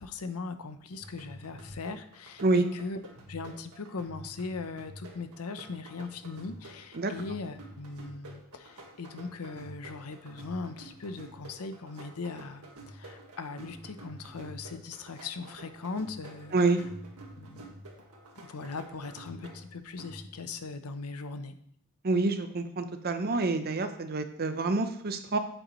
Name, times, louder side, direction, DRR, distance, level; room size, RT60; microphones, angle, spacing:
voice 1, 0.0-3.0 3.3-16.5 17.4-17.7 18.4-21.5, left 4 dB, 80° left, 9 dB, 0.7 m, -39 dB
sound 1, 0.9-20.6, right 1 dB, 85° right, 1.7 m, -49 dB
voice 2, 22.0-25.4, right 3 dB, 45° right, 8 dB, 0.7 m, -27 dB
7.9 x 7.9 x 3.1 m, 0.66 s
head